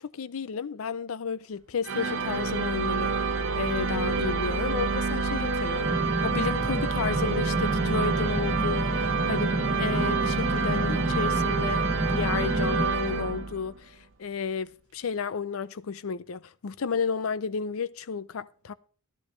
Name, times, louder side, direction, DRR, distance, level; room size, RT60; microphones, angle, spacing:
voice 1, 0.0-3.1 3.5-6.0 6.2-18.7, left 5 dB, 75° left, 0.5 m, -32 dB
sound 1, 1.8-13.8, right 4 dB, 65° right, 0.9 m, -28 dB
sound 2, 5.9-12.9, right 1 dB, 15° right, 0.7 m, -30 dB
14.0 x 11.5 x 3.2 m
head